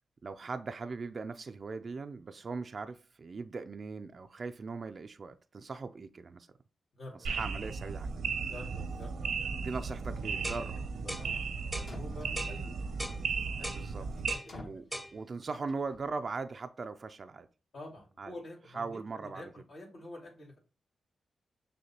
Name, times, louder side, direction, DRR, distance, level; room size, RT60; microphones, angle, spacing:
voice 1, 0.2-6.5 7.3-8.1 9.6-10.8 13.7-14.0 14.6-14.8 15.1-17.5 18.2-18.3 18.7-19.4, right 4 dB, 50° right, 0.3 m, -39 dB
voice 2, 6.9-7.3 8.5-9.5 10.8-12.8 13.5-15.0 17.7-20.6, left 1 dB, 70° left, 2.0 m, -49 dB
sound 1, 7.3-14.3, right 5 dB, 85° right, 0.7 m, -36 dB
sound 2, 10.4-10.7 11.1-11.3 11.7-11.9 12.4-12.6 13.0-13.2 13.6-13.8 14.3-14.5 14.9-15.1, equal, 5° left, 0.7 m, -39 dB
sound 3, 11.5-11.6 11.9-12.7 14.5-14.9 15.7-16.1, left 2 dB, 55° left, 1.2 m, -47 dB
6.4 x 2.2 x 2.9 m
cardioid pair, 55°, 0 cm